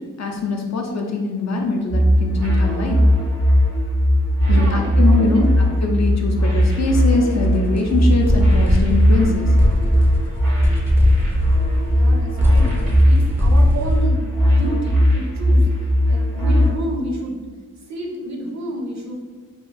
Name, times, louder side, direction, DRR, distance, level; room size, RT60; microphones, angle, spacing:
voice 1, 0.2-3.0 4.5-9.5, left 3 dB, 50° left, 2 dB, 0.5 m, -22 dB
sound 1, 1.9-16.7, equal, 85° right, 0.9 m, -17 dB
voice 2, 4.4-5.4 10.3-10.9 11.9-15.7 16.0-17.4 17.8-19.1, right 1 dB, 55° right, 0 dB, 0.6 m, -30 dB
sound 2, 6.5-6.9 7.3-7.4 7.8-7.9 8.2-14.1, equal, 5° right, 0.4 m, -22 dB
2.7 x 2.3 x 2.5 m, 1.4 s
cardioid pair, 50°, 34 cm